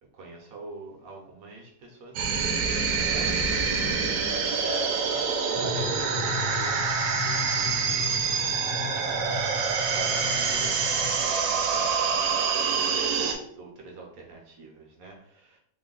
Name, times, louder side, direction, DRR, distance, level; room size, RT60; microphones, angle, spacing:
voice 1, 0.1-3.4 3.9-9.6 9.9-15.6, right 2 dB, 60° right, 0 dB, 1.1 m, -44 dB
sound 1, 2.2-13.4, right 5 dB, 85° right, 1.3 m, -26 dB
sound 2, 5.5-11.2, left 6 dB, 70° left, 0.8 m, -37 dB
3.7 x 2.1 x 3.7 m, 0.67 s
omnidirectional pair, 1.9 m